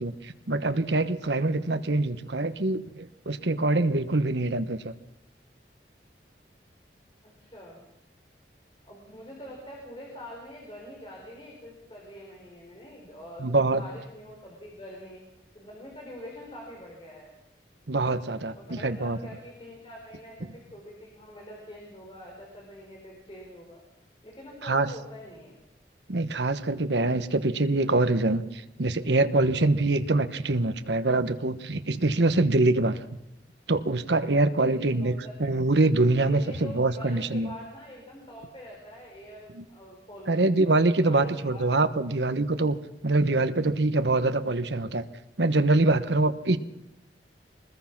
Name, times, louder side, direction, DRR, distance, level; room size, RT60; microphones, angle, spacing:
voice 1, 0.0-4.9 13.4-13.8 17.9-19.2 24.6-24.9 26.1-33.0 33.7-37.5 39.6-39.7 40.3-42.8 43.0-45.0 45.4-46.6, right 2 dB, 80° right, 11 dB, 1.1 m, -24 dB
voice 2, 7.2-7.8 8.8-15.2 15.5-17.3 18.5-23.8 24.2-25.6 34.5-35.6 36.3-41.7, equal, 30° left, -1 dB, 4.1 m, -45 dB
23.0 x 20.5 x 6.0 m, 0.85 s
head